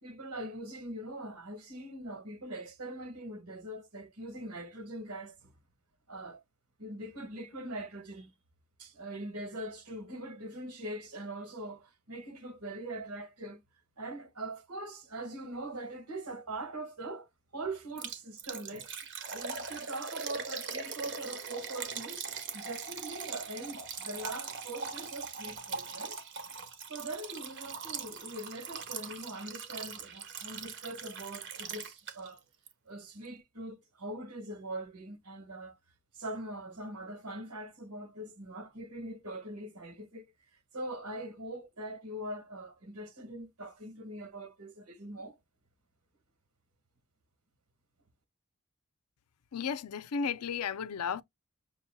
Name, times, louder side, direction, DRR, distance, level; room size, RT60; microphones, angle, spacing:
voice 1, 0.0-5.5 6.1-6.4 6.8-8.3 8.8-13.6 14.0-22.2 22.5-26.2 26.9-32.4 32.8-35.8 36.1-40.2 40.7-45.4, right 1 dB, 85° right, 1.7 m, -42 dB
Liquid, 18.0-32.4 32.7-32.8 33.2-33.3, right 5 dB, 55° right, 1.0 m, -41 dB
voice 2, 49.5-51.2, left 6 dB, 85° left, 0.5 m, -34 dB
6.3 x 2.8 x 2.2 m
head